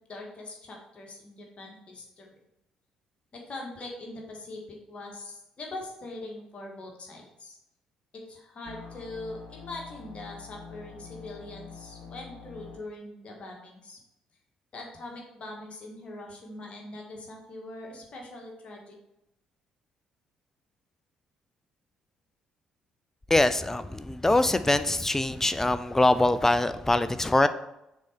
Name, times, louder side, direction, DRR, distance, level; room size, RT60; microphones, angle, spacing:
voice 1, 0.0-2.4 3.3-7.6 8.1-14.0 14.7-19.0, left 2 dB, 40° left, 0 dB, 1.8 m, -42 dB
sound 1, 8.6-12.8, left 6 dB, 60° left, 0.9 m, -46 dB
voice 2, 23.3-27.5, left 2 dB, 15° left, 12 dB, 0.5 m, -23 dB
6.3 x 4.1 x 5.2 m, 0.87 s
figure-of-eight pair, 45°, 3 cm